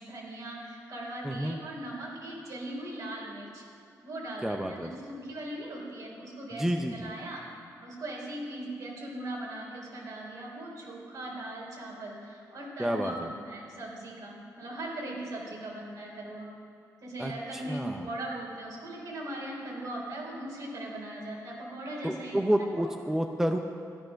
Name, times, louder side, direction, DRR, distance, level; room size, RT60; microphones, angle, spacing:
voice 1, 0.0-3.6 4.0-6.7 6.9-7.4 7.8-16.5 17.0-22.4 22.8-22.9, right 1 dB, 65° right, -2 dB, 3.8 m, -39 dB
voice 2, 1.2-1.6 4.4-4.9 6.5-7.1 12.8-13.3 17.2-18.1 22.0-23.6, equal, 5° right, 4 dB, 0.6 m, -30 dB
13.0 x 10.0 x 6.4 m, 2.4 s
cardioid pair, 100°, 7 cm